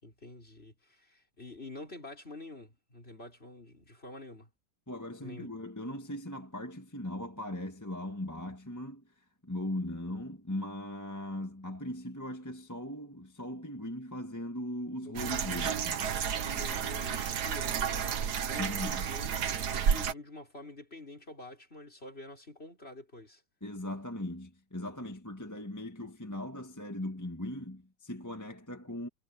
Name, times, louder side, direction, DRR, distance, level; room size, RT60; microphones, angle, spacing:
voice 1, 0.0-4.5 5.2-5.5 15.0-15.8 16.4-19.3 19.6-23.4, left 2 dB, 30° left, 6.4 m, -48 dB
voice 2, 4.9-9.0 9.4-16.0 18.6-19.0 23.6-29.1, left 1 dB, 10° left, 1.6 m, -39 dB
sound 1, 15.2-20.1, right 7 dB, 60° right, 1.7 m, -31 dB
omnidirectional pair, 2.1 m